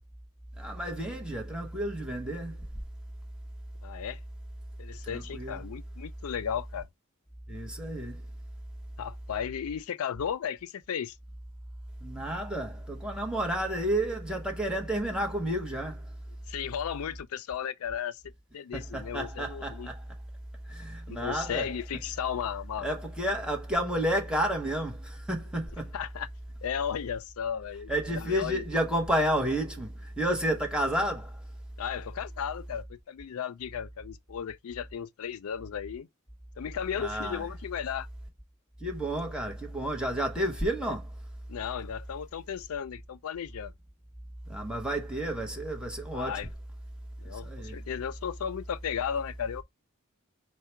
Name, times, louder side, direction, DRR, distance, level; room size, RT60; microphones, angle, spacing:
voice 1, 0.6-2.6 5.1-5.6 7.5-8.2 12.0-16.1 18.7-20.0 20.7-21.7 22.8-25.9 27.9-31.4 37.0-37.5 38.8-41.1 44.5-46.4 47.2-47.8, right 1 dB, 5° right, 0.9 m, -31 dB
voice 2, 3.8-4.2 4.8-6.9 9.0-11.2 16.5-19.9 21.1-22.9 25.9-26.3 26.6-28.7 31.8-36.1 36.6-38.1 40.8-40.9 41.5-43.7 46.1-46.5 47.2-49.6, left 8 dB, 80° left, 0.4 m, -35 dB
4.7 x 2.1 x 4.3 m
head